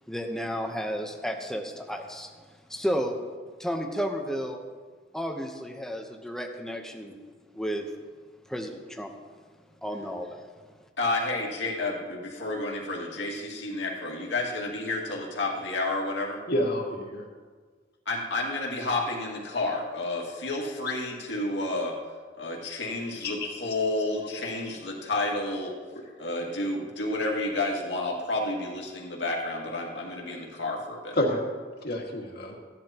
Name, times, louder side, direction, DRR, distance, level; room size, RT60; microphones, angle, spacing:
voice 1, 0.1-2.3 2.7-3.1 3.6-4.6 5.1-7.1 7.5-7.8 8.5-9.1 9.8-10.4, equal, 5° left, 3 dB, 0.9 m, -32 dB
voice 2, 11.0-16.4 18.1-22.0 22.4-25.7 26.2-31.2, left 2 dB, 75° left, -2 dB, 2.3 m, -30 dB
voice 3, 16.5-17.2 23.2-23.5 31.1-31.4 31.8-32.5, left 1 dB, 60° left, -1 dB, 2.0 m, -28 dB
15.5 x 11.0 x 3.0 m, 1.5 s
head